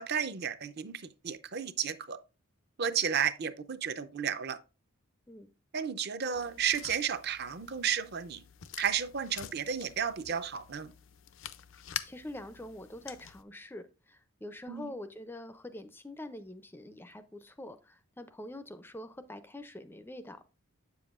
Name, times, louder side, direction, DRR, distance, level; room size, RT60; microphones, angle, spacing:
voice 1, 0.0-2.2 2.8-4.6 5.7-8.4 8.8-10.9 14.7-14.9, right 8 dB, 50° right, 0.5 m, -33 dB
sound 1, 6.3-13.4, left 10 dB, 65° left, 0.5 m, -46 dB
voice 2, 12.0-20.5, left 1 dB, 10° left, 0.4 m, -45 dB
8.1 x 7.0 x 2.4 m
head